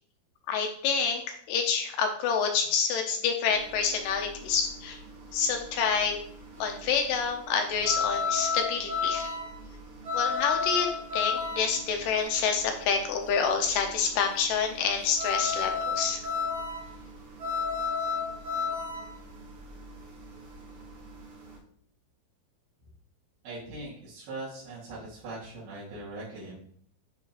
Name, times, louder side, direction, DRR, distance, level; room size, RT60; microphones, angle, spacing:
voice 1, 0.5-1.2 1.5-5.0 5.3-6.2 6.6-9.3 10.1-10.9 11.1-16.2, left 6 dB, 80° left, 4 dB, 2.0 m, -27 dB
sound 1, 3.5-21.5, left 5 dB, 55° right, 2.0 m, -32 dB
voice 2, 23.4-26.7, right 2 dB, 90° right, -9 dB, 4.0 m, -40 dB
9.7 x 3.7 x 2.9 m, 0.63 s
omnidirectional pair, 4.3 m